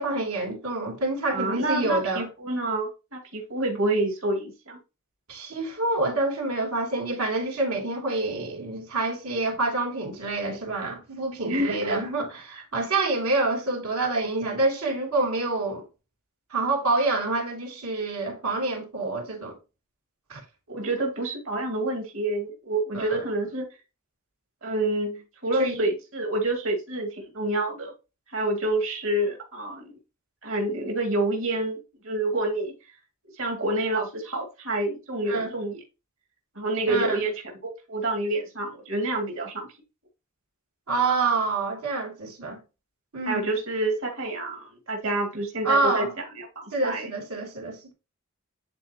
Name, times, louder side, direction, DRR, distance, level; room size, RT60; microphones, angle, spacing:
voice 1, 0.0-2.3 5.3-15.9 16.5-19.6 20.3-20.4 22.9-23.2 25.6-25.7 35.3-35.5 36.9-37.2 40.9-42.6 43.1-43.5 45.6-46.1 46.7-47.9, right 3 dB, 80° right, 2.8 m, -27 dB
voice 2, 1.3-4.8 11.4-12.0 20.7-23.7 24.6-27.9 28.3-29.9 30.4-32.7 33.4-35.8 36.6-37.3 37.6-39.7 43.3-47.1, right 2 dB, 60° right, 2.4 m, -28 dB
9.7 x 4.3 x 2.9 m
head